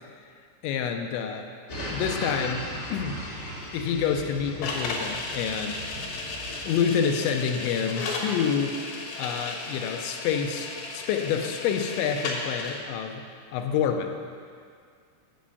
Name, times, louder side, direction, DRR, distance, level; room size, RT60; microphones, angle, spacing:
voice 1, 0.6-1.5 1.9-3.2 3.7-5.8 6.7-8.8 9.2-10.7 10.9-13.3 13.5-14.2, left 7 dB, 90° left, 5 dB, 3.0 m, -28 dB
sound 1, 1.7-7.0, equal, 45° left, 1.7 m, -37 dB
sound 2, 4.6-12.8, left 3 dB, 70° left, 3.2 m, -34 dB
8.5 x 6.2 x 8.1 m, 2.1 s
omnidirectional pair, 5.3 m